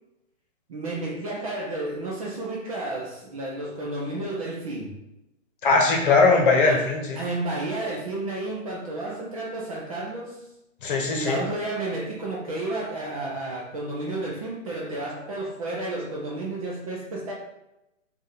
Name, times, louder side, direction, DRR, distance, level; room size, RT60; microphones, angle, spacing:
voice 1, 0.7-5.0 6.6-6.9 7.1-10.5 11.1-17.3, right 2 dB, 30° right, -2 dB, 0.5 m, -31 dB
voice 2, 5.6-7.2 10.8-11.4, left 3 dB, 40° left, 1 dB, 1.0 m, -20 dB
3.4 x 2.6 x 4.1 m, 0.89 s
hypercardioid pair, 145°, 38 cm